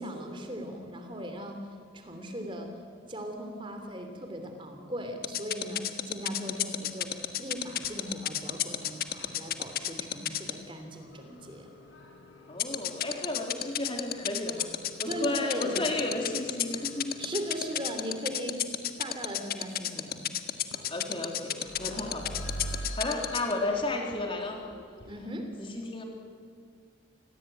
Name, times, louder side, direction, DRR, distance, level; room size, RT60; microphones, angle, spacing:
voice 1, 0.0-2.8 3.1-11.7 15.1-15.8 17.2-18.6 19.0-20.3 25.1-25.5, equal, 25° right, 5 dB, 3.0 m, -38 dB
sound 1, 5.2-10.5 12.6-23.5, left 11 dB, 50° left, 1.5 m, -30 dB
sound 2, 6.2-18.1 18.7-18.8 19.0-19.1 19.4-19.5 20.4-20.5 20.7-25.2, equal, 75° left, 5.0 m, -47 dB
voice 2, 12.5-14.7 15.0-17.2 20.9-22.3 22.7-24.6 25.7-26.0, left 2 dB, 25° left, 1 dB, 3.4 m, -33 dB
30.0 x 21.5 x 9.1 m, 2.1 s
head